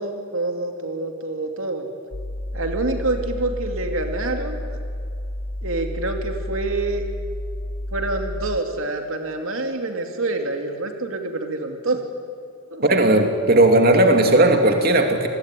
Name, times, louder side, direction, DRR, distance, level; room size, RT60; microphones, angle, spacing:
voice 1, 0.0-1.9 2.5-4.6 5.6-7.0 7.9-12.0 12.7-13.3, right 2 dB, 80° right, 4 dB, 2.6 m, -27 dB
sound 1, 2.1-8.6, left 1 dB, 85° left, 1.6 m, -31 dB
voice 2, 12.8-15.3, right 1 dB, 45° right, 4 dB, 2.9 m, -16 dB
29.0 x 21.0 x 10.0 m, 2.3 s
head